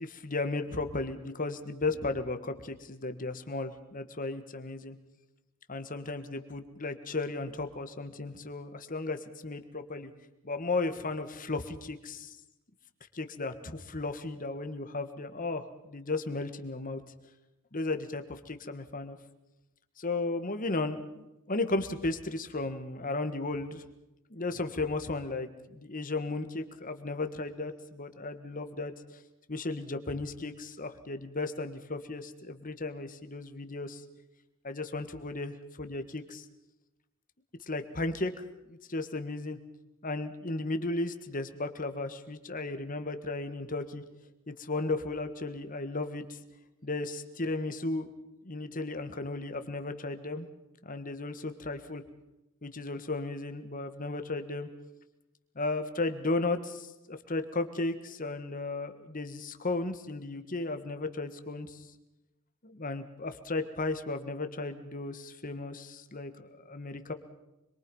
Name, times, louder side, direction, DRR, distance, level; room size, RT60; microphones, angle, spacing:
voice 1, 0.0-5.0 5.7-10.1 10.4-12.4 13.1-17.0 17.7-19.2 20.0-23.8 24.3-28.9 29.5-34.0 34.6-36.4 37.7-38.3 38.7-39.6 40.0-44.0 44.5-46.4 46.8-48.1 48.4-50.5 50.8-52.0 52.6-54.7 55.5-61.8 62.6-67.1, left 2 dB, 40° left, 8 dB, 1.6 m, -35 dB
26.0 x 22.5 x 5.5 m, 0.95 s
head